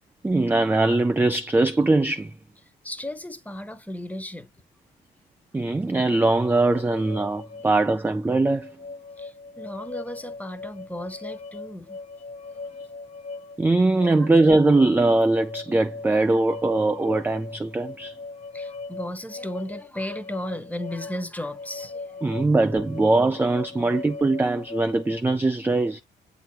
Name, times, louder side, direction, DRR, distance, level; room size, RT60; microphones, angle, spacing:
voice 1, 0.2-2.3 5.5-8.7 13.6-18.2 22.2-26.0, right 2 dB, 10° right, 0.4 m, -21 dB
voice 2, 2.8-4.5 9.2-12.0 12.5-12.6 18.5-22.2, left 1 dB, 5° left, 1.0 m, -35 dB
sound 1, 6.6-25.4, left 3 dB, 35° left, 0.6 m, -40 dB
7.8 x 2.8 x 4.4 m
cardioid pair, 90°, 20 cm